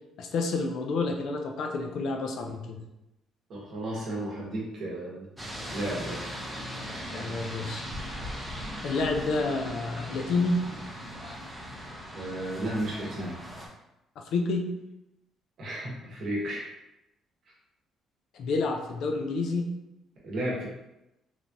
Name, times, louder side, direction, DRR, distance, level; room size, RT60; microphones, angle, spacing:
voice 1, 0.2-2.8 7.1-7.9 8.8-10.6 14.2-14.7 18.3-19.7, left 3 dB, 55° left, 3 dB, 0.4 m, -29 dB
voice 2, 3.5-5.3 5.7-6.2 12.1-13.3 15.6-16.7 20.2-20.7, right 1 dB, 45° right, -4 dB, 0.9 m, -33 dB
sound 1, 5.4-13.7, equal, 5° right, 0.5 m, -39 dB
3.1 x 2.3 x 2.6 m, 0.92 s
cardioid pair, 175°, 0 cm